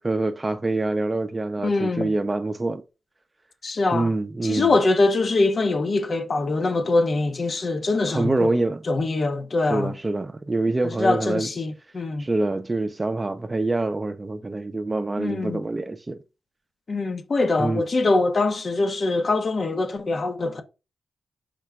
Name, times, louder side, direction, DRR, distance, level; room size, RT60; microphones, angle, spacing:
voice 1, 0.0-2.8 3.9-4.7 8.1-8.8 9.7-11.5 12.2-16.2 17.6-17.8, right 2 dB, 30° right, 0.5 m, -25 dB
voice 2, 1.6-2.1 3.6-4.1 4.4-8.5 8.8-9.9 10.8-12.3 15.2-15.6 16.9-20.6, left 3 dB, 50° left, 0.8 m, -23 dB
5.1 x 2.1 x 4.6 m
cardioid pair, 55°, 0 cm